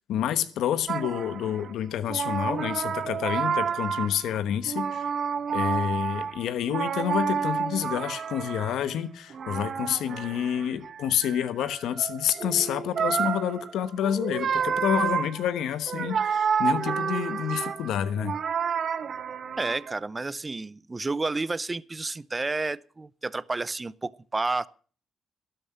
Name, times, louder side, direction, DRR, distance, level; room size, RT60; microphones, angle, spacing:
voice 1, 0.1-5.0 5.5-18.3, left 9 dB, 80° left, 1.1 m, -28 dB
sound 1, 0.9-1.7 2.1-4.4 4.6-8.9 9.3-19.9, right 7 dB, 60° right, 1.0 m, -30 dB
voice 2, 19.6-24.7, right 3 dB, 25° right, 0.7 m, -30 dB
12.5 x 11.0 x 5.7 m
supercardioid pair, 60°, 0 cm